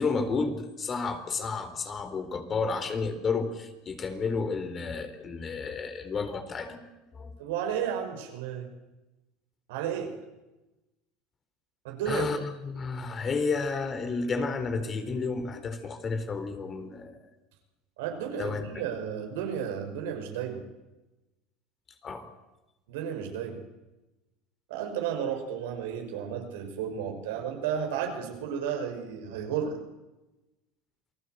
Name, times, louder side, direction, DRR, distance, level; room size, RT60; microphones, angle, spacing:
voice 1, 0.0-6.8 7.1-7.3 12.1-17.2 18.4-18.6 22.0-22.3, left 4 dB, 30° left, 8 dB, 4.1 m, -31 dB
voice 2, 7.4-8.7 9.7-10.2 11.8-12.3 18.0-20.6 22.9-23.6 24.7-29.8, right 8 dB, 80° right, 4 dB, 6.0 m, -33 dB
28.0 x 19.0 x 8.1 m, 1.0 s
supercardioid pair, 105°, 0 cm